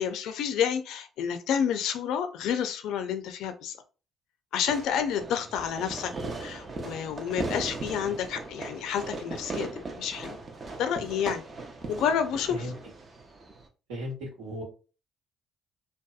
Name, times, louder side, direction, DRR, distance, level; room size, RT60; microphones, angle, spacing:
voice 1, 0.0-3.8 4.5-10.4 10.8-11.4 11.9-12.7, left 8 dB, 75° left, 0.3 m, -29 dB
Fireworks, 4.7-13.7, right 3 dB, 45° right, 0.6 m, -38 dB
voice 2, 13.9-14.6, equal, 85° right, 1.1 m, -36 dB
2.6 x 2.2 x 2.3 m
hypercardioid pair, 60°, 0 cm